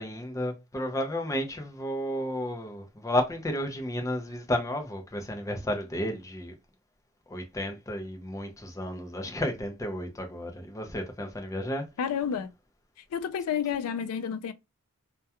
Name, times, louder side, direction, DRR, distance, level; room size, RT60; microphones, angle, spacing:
voice 1, 0.0-6.5 7.3-11.8, left 1 dB, 15° left, 0.5 m, -32 dB
voice 2, 12.0-12.5 13.1-14.5, left 8 dB, 85° left, 0.3 m, -30 dB
2.3 x 2.2 x 2.7 m
head